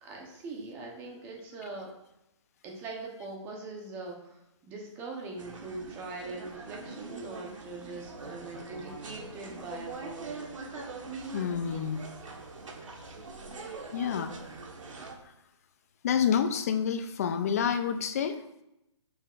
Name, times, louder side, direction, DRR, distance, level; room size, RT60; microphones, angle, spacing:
voice 1, 0.0-1.9 2.6-10.5, right 3 dB, 15° right, 1 dB, 0.9 m, -42 dB
sound 1, 5.4-15.2, right 3 dB, 90° right, 1.4 m, -43 dB
voice 2, 11.3-12.0 13.9-14.3 16.0-18.4, left 7 dB, 30° left, 8 dB, 0.5 m, -28 dB
6.9 x 6.8 x 2.5 m, 0.84 s
hypercardioid pair, 165°, 16 cm